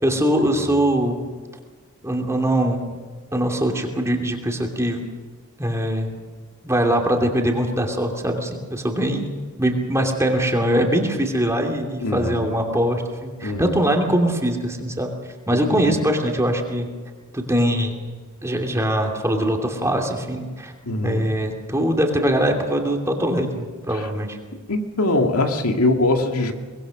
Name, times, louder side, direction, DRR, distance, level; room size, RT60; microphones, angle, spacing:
voice 1, 0.0-1.3 2.0-3.0 3.3-5.0 5.6-6.2 6.6-9.3 9.6-15.1 15.5-16.9 17.3-18.0 18.4-20.7 21.0-24.4, right 1 dB, 15° right, 2 dB, 2.7 m, -22 dB
voice 2, 12.0-12.5 13.4-13.8 15.7-15.9 20.8-21.3 24.7-26.5, left 2 dB, 80° left, 3 dB, 2.2 m, -22 dB
24.0 x 20.5 x 6.4 m, 1.5 s
head